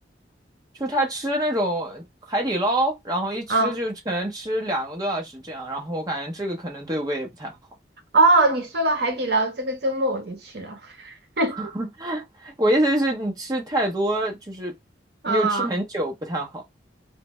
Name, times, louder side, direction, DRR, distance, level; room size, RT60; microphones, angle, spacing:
voice 1, 0.8-7.6 11.5-14.7 15.3-16.6, right 1 dB, 20° right, 0.8 m, -26 dB
voice 2, 8.1-11.6 15.2-15.7, right 2 dB, 60° right, 0.9 m, -22 dB
3.2 x 2.2 x 3.0 m
head